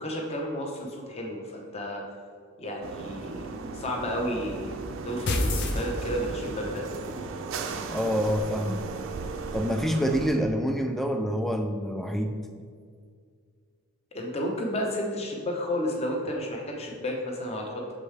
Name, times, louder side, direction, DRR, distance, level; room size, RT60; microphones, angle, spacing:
voice 1, 0.0-2.0 2.6-3.4 3.7-6.8 14.1-17.8, equal, 30° left, 0 dB, 0.8 m, -32 dB
sound 1, 2.8-10.3, right 3 dB, 65° right, 0.5 m, -36 dB
sound 2, 5.3-6.5, left 2 dB, 55° left, 0.6 m, -27 dB
voice 2, 7.9-8.9 9.5-12.4, equal, ahead, 5 dB, 0.3 m, -27 dB
6.4 x 5.2 x 3.3 m, 2.1 s
head